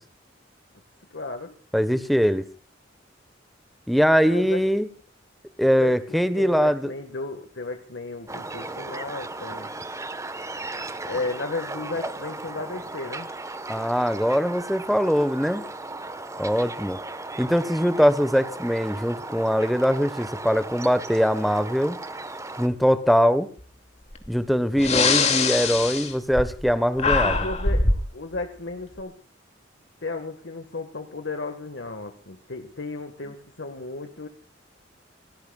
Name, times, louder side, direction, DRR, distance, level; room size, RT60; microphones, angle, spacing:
voice 1, 1.1-1.6 4.2-4.6 5.6-9.7 11.0-13.3 27.0-29.1 30.0-34.3, left 3 dB, 65° left, 6 dB, 1.8 m, -34 dB
voice 2, 1.7-2.4 3.9-4.9 5.6-6.9 13.7-15.6 16.4-17.0 17.4-22.0 22.6-23.5 24.3-27.3, equal, ahead, 13 dB, 1.3 m, -22 dB
sound 1, 8.3-22.7, right 2 dB, 15° right, 1.3 m, -36 dB
Breathing, 24.1-24.3 24.7-26.7 27.0-28.1, left 4 dB, 35° left, 2.7 m, -22 dB
28.0 x 19.0 x 2.4 m, 0.39 s
head